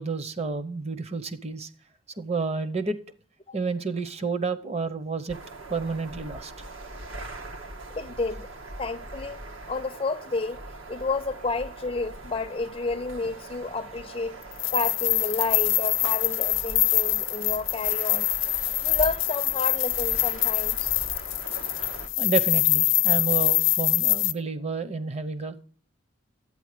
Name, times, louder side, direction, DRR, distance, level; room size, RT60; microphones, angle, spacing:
voice 1, 0.0-1.7 2.2-3.0 3.5-5.4 5.7-6.5 22.2-25.6, right 4 dB, 30° right, 0.8 m, -30 dB
sound 1, 5.3-22.1, right 2 dB, 80° right, 1.6 m, -41 dB
voice 2, 8.0-8.5 8.8-9.4 9.7-10.6 10.9-14.4 14.7-18.3 18.8-21.1, left 3 dB, 25° left, 0.5 m, -30 dB
sound 2, 14.5-24.3, left 19 dB, 70° left, 0.6 m, -24 dB
12.0 x 9.0 x 5.0 m
head